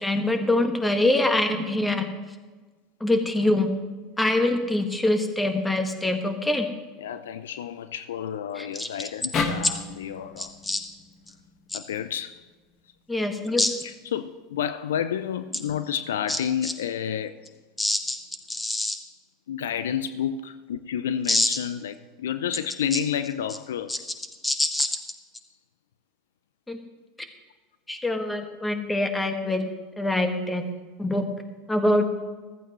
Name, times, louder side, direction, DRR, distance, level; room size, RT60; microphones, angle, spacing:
voice 1, 0.0-2.0 3.0-3.7 4.2-6.7 8.6-8.9 10.4-10.8 11.7-11.8 13.1-13.7 16.6-16.7 17.8-18.2 18.5-19.0 21.3-21.5 23.9-24.0 24.4-24.9 26.7-26.8 27.9-30.7 31.0-31.2 31.7-32.1, left 1 dB, 10° left, 1.7 m, -24 dB
voice 2, 7.0-10.6 11.7-12.4 13.8-17.5 19.5-24.0, left 9 dB, 75° left, 0.4 m, -30 dB
sound 1, 9.3-12.6, left 4 dB, 40° left, 1.5 m, -33 dB
14.5 x 14.0 x 3.1 m
hypercardioid pair, 80°, 0 cm